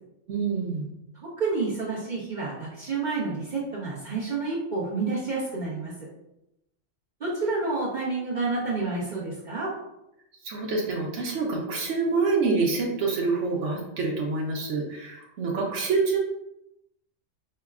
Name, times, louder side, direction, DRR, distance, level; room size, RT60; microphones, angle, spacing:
voice 1, 0.3-0.9 10.4-16.2, right 4 dB, 90° right, -1 dB, 1.0 m, -26 dB
voice 2, 1.1-5.9 7.2-9.7, right 3 dB, 45° right, -7 dB, 0.9 m, -29 dB
5.5 x 2.1 x 2.3 m, 0.86 s
omnidirectional pair, 1.2 m